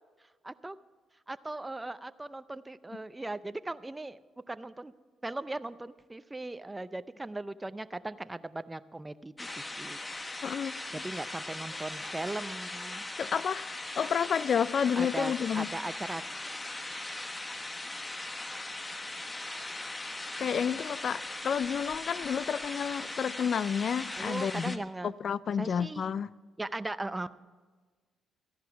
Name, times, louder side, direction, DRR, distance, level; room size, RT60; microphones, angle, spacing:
voice 1, 0.4-0.8 1.3-4.2 4.5-4.9 5.2-10.0 11.0-13.0 15.0-16.2 24.2-25.1 25.6-26.1 26.6-27.3, right 2 dB, 15° right, 0.5 m, -38 dB
sound 1, 9.4-24.8, left 2 dB, 20° left, 0.8 m, -39 dB
voice 2, 10.4-10.7 13.2-15.7 20.4-24.8 25.0-26.3, left 7 dB, 55° left, 0.3 m, -30 dB
13.5 x 11.0 x 5.8 m
cardioid pair, 90°, 0 cm